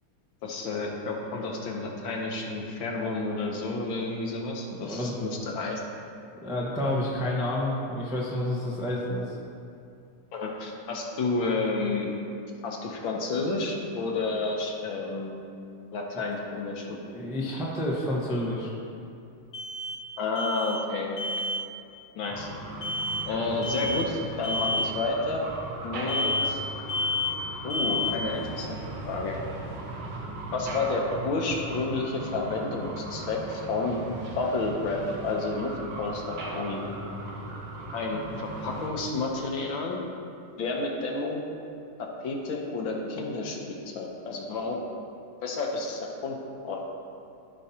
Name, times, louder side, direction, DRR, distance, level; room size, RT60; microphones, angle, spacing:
voice 1, 0.4-5.8 10.3-12.1 12.6-15.3 15.9-17.0 20.2-21.4 22.1-22.5 23.3-25.5 25.8-26.6 27.6-28.8 29.1-29.4 30.5-34.0 34.3-35.7 36.0-36.9 37.9-40.0 40.6-41.4 42.0-43.6 43.9-44.7 45.4-46.4 46.6-46.8, left 3 dB, 70° left, 0 dB, 1.7 m, -30 dB
voice 2, 4.8-5.2 6.4-9.3 17.1-18.7, left 1 dB, 5° right, -4 dB, 0.6 m, -29 dB
sound 1, 16.3-16.4 19.5-20.1 20.4-20.9 21.2-21.7 22.8-23.3 23.6-24.1 24.4-24.9 26.1-26.6 26.9-27.4 27.7-28.3, left 2 dB, 50° left, 1.4 m, -30 dB
sound 2, 22.3-38.9, right 2 dB, 75° right, 1.9 m, -38 dB
14.5 x 5.4 x 2.9 m, 2.5 s
omnidirectional pair, 2.4 m